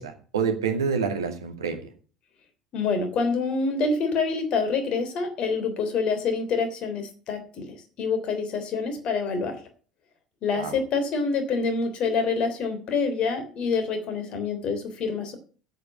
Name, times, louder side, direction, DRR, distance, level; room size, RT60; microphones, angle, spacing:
voice 1, 0.0-1.8 10.5-10.7, right 6 dB, 75° right, 5 dB, 2.2 m, -27 dB
voice 2, 2.7-7.7 8.0-9.5 10.4-15.3, left 4 dB, 45° left, 7 dB, 3.3 m, -26 dB
8.5 x 7.9 x 9.0 m, 0.40 s
figure-of-eight pair, 65°, 2 cm